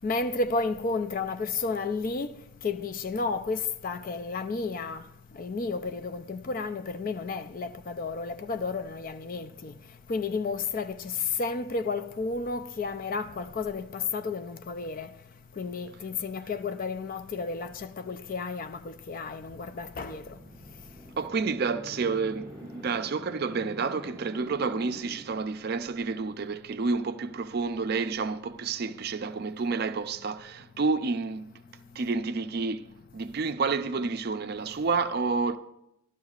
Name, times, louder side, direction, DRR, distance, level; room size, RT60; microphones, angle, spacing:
voice 1, 0.0-2.3 2.6-5.0 5.3-9.7 10.1-15.1 15.6-20.2, left 4 dB, 40° left, 0.4 m, -32 dB
sound 1, 19.4-26.1, equal, 20° left, 2.5 m, -46 dB
voice 2, 21.2-31.5 32.0-32.9 33.1-35.6, right 4 dB, 45° right, 0.4 m, -29 dB
12.5 x 12.0 x 2.4 m
head